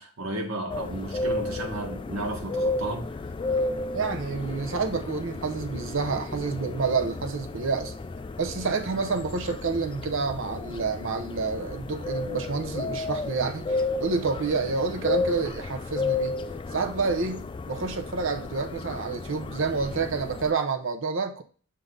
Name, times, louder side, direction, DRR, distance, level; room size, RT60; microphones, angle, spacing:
voice 1, 0.0-3.1, right 1 dB, 80° right, 1.7 m, -33 dB
sound 1, 0.7-20.5, left 3 dB, 25° left, 0.3 m, -33 dB
voice 2, 3.9-7.9 8.4-16.4 16.7-21.4, right 4 dB, 65° right, 0.7 m, -28 dB
6.7 x 3.8 x 3.8 m
head